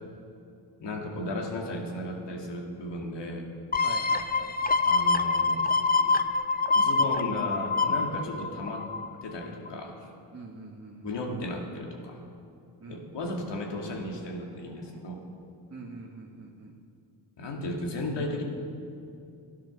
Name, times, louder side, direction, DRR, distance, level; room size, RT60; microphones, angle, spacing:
voice 1, 0.8-3.4 4.8-5.6 5.9-6.1 6.7-8.9 9.2-10.1 11.0-12.2 12.9-15.2 17.4-18.4, left 1 dB, 80° left, 1 dB, 2.3 m, -35 dB
sound 1, 3.7-9.2 9.7-9.8, left 4 dB, 20° left, 0.7 m, -25 dB
voice 2, 3.8-4.5 10.3-11.1 12.8-13.0 15.7-16.7, right 3 dB, 40° right, -1 dB, 1.5 m, -44 dB
13.0 x 11.0 x 6.1 m, 2.5 s
cardioid pair, 80°, 42 cm